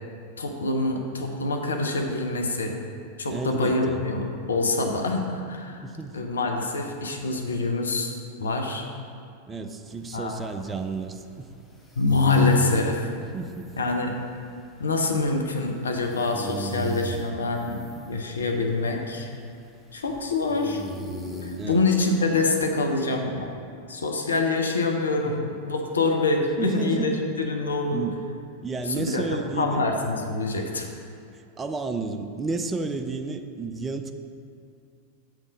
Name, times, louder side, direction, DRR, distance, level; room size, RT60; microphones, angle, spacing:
voice 1, 0.4-2.7 3.2-5.8 6.1-8.9 10.1-10.4 12.0-13.1 13.8-14.1 14.8-19.3 19.9-20.8 21.4-23.5 23.9-28.0 28.9-30.9, left 3 dB, 70° left, 3 dB, 0.6 m, -25 dB
voice 2, 3.3-4.0 5.8-6.2 9.5-11.5 13.2-13.7 21.6-21.8 25.2-25.3 26.6-27.2 27.9-28.2 28.6-29.8 31.3-34.1, right 4 dB, 15° right, 6 dB, 0.4 m, -32 dB
sound 1, 9.9-22.9, right 3 dB, 10° left, 0.8 m, -40 dB
7.2 x 3.5 x 5.2 m, 2.5 s
figure-of-eight pair, 90°, 0 cm